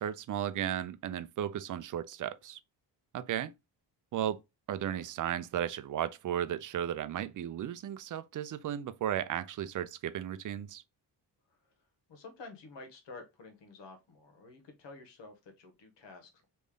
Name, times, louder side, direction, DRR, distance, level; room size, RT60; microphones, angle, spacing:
voice 1, 0.0-2.6 3.1-3.5 4.1-4.4 4.7-10.8, right 10 dB, 45° right, 0.5 m, -35 dB
voice 2, 12.1-16.5, left 3 dB, 70° left, 1.2 m, -50 dB
3.3 x 2.6 x 3.6 m
supercardioid pair, 65°, 45 cm